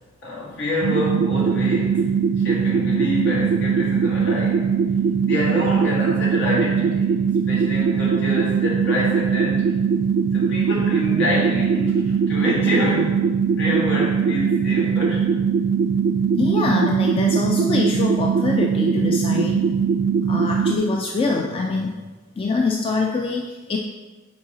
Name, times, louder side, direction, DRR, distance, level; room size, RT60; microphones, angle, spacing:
voice 1, 0.2-4.7 5.2-9.7 10.3-13.2 13.6-15.3, left 1 dB, 60° left, -4 dB, 1.7 m, -27 dB
sound 1, 0.8-20.8, right 6 dB, 60° right, 0.4 m, -21 dB
voice 2, 16.4-19.7 20.3-22.0 22.4-23.8, left 3 dB, 25° left, 1 dB, 0.3 m, -24 dB
7.6 x 4.6 x 2.8 m, 1.3 s
head